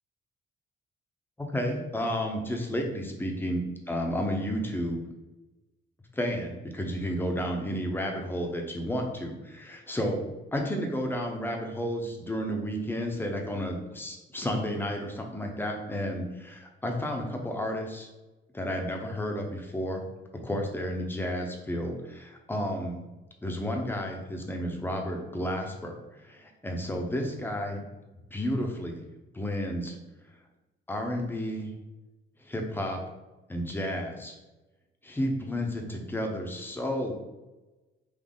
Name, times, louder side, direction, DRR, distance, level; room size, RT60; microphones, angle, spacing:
voice 1, 1.4-5.0 6.1-18.1 18.5-20.0 20.4-23.0 23.4-27.9 28.3-29.0 29.3-30.0 30.9-31.7 32.4-33.0 33.5-34.3 35.0-37.1, equal, 10° left, 2 dB, 0.8 m, -32 dB
4.0 x 2.7 x 3.7 m, 1.1 s
cardioid pair, 90°, 20 cm